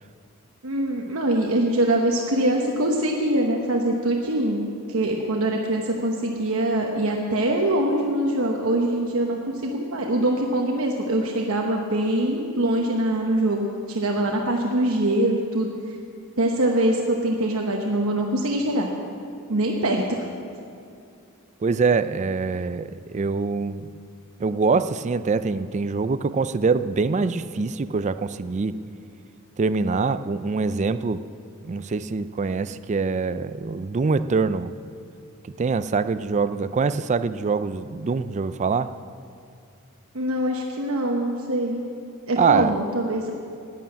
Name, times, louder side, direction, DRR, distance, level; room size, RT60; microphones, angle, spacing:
voice 1, 0.6-15.7 16.4-18.9 19.5-20.3 40.1-41.8 42.3-43.3, right 1 dB, 70° right, 1 dB, 1.1 m, -23 dB
voice 2, 21.6-23.9 24.4-28.8 29.6-31.2 31.6-34.7 35.6-38.9 42.4-42.7, right 4 dB, 35° right, 13 dB, 0.4 m, -24 dB
11.5 x 9.4 x 8.6 m, 2.4 s
head